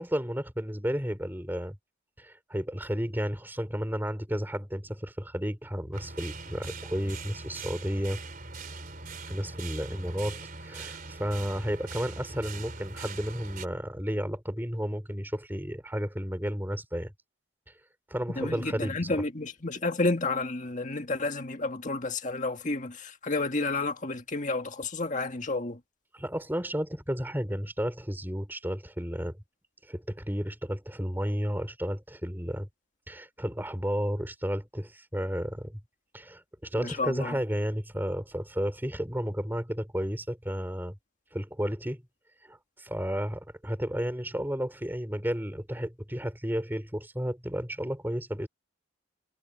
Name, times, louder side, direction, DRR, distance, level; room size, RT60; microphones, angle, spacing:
voice 1, 0.0-1.8 2.2-8.2 9.3-17.1 18.1-19.0 26.1-29.4 29.9-32.7 33.1-35.8 36.1-41.0 41.3-42.0 42.4-48.5, equal, 10° right, 3.6 m, -32 dB
sound 1, 5.9-13.7, right 4 dB, 45° right, 3.7 m, -42 dB
voice 2, 18.3-25.8 36.8-37.3, left 3 dB, 40° left, 1.9 m, -31 dB
head